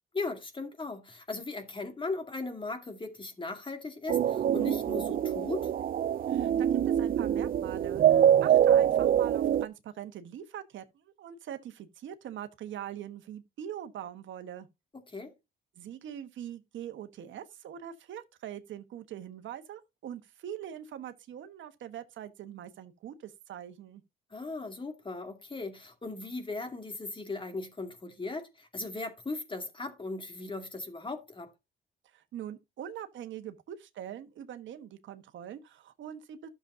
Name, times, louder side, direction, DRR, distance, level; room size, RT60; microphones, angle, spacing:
voice 1, 0.1-5.7 14.9-15.3 24.3-31.5, left 3 dB, 25° left, 2.3 m, -38 dB
sound 1, 4.1-9.6, right 10 dB, 45° right, 0.5 m, -25 dB
voice 2, 6.3-14.7 15.8-24.0 32.1-36.5, right 10 dB, 70° right, 1.3 m, -43 dB
12.0 x 7.1 x 2.7 m
cardioid pair, 90°, 20 cm